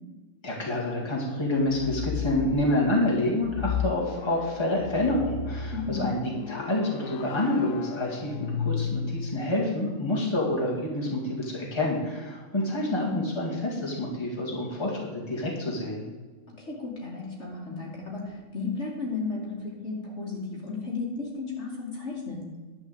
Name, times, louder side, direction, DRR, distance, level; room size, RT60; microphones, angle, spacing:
voice 1, 0.4-6.2 6.5-16.0, left 1 dB, 20° left, -3 dB, 2.2 m, -28 dB
sound 1, 1.6-2.6 3.4-9.4, left 7 dB, 70° left, 1.0 m, -34 dB
voice 2, 5.7-6.1 13.0-13.2 16.5-22.4, left 4 dB, 50° left, -2 dB, 2.7 m, -34 dB
11.0 x 5.3 x 8.0 m, 1.3 s
omnidirectional pair, 1.5 m